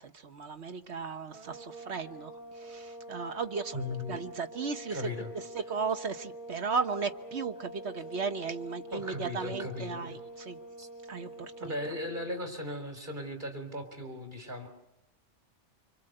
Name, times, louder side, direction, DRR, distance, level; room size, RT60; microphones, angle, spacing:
voice 1, 0.0-3.8 4.1-5.0 5.3-10.6 11.1-11.7, right 5 dB, 70° right, 1.6 m, -36 dB
sound 1, 1.3-12.4, right 1 dB, 85° right, 3.4 m, -46 dB
voice 2, 3.7-4.2 4.9-5.3 8.9-10.2 10.8-10.9 11.6-14.7, left 1 dB, 40° right, 4.3 m, -37 dB
25.5 x 25.5 x 8.0 m
omnidirectional pair, 1.2 m